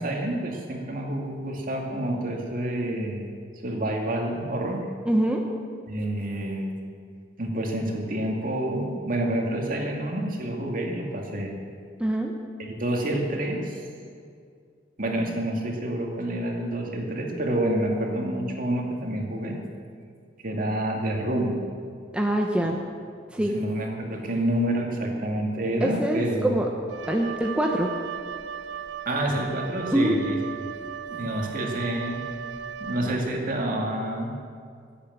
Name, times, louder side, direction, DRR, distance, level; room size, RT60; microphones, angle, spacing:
voice 1, 0.0-3.3 3.6-4.9 5.9-6.7 7.4-11.5 12.6-13.8 15.0-19.6 20.4-21.6 22.6-22.7 23.4-26.6 29.1-30.4 31.1-32.2 32.8-34.3, right 1 dB, 50° right, 0 dB, 2.3 m, -28 dB
voice 2, 5.1-5.4 12.0-12.3 22.1-22.8 23.3-23.6 25.8-26.7 27.1-27.9 29.9-30.2, right 1 dB, 5° right, 1 dB, 0.9 m, -24 dB
Wind instrument woodwind instrument, 26.9-33.4, right 9 dB, 80° right, 0.6 m, -37 dB
17.0 x 8.6 x 7.9 m, 2.2 s
head